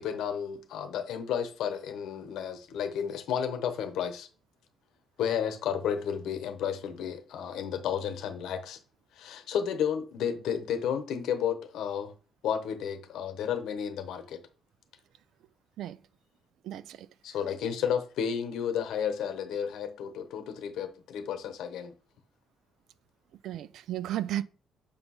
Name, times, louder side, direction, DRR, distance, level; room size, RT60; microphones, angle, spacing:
voice 1, 0.0-4.3 5.2-8.8 9.2-12.1 12.4-14.4 17.2-21.9, left 8 dB, 80° left, 0.8 m, -32 dB
voice 2, 16.6-17.1 23.4-24.4, right 12 dB, 75° right, 0.3 m, -34 dB
6.7 x 2.6 x 5.5 m
cardioid pair, 150°, 0 cm